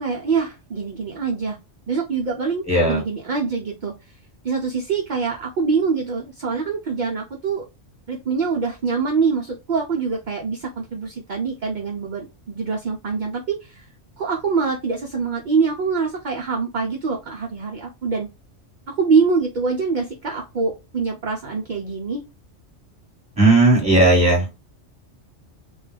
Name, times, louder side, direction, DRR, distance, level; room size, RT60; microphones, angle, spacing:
voice 1, 0.0-1.6 1.9-3.9 4.4-7.6 8.1-13.9 14.2-18.3 18.9-22.2, right 5 dB, 60° right, 0 dB, 0.5 m, -24 dB
voice 2, 2.7-3.0 23.4-24.5, right 2 dB, 5° right, -2 dB, 1.0 m, -15 dB
2.3 x 2.2 x 3.2 m, 0.26 s
omnidirectional pair, 1.3 m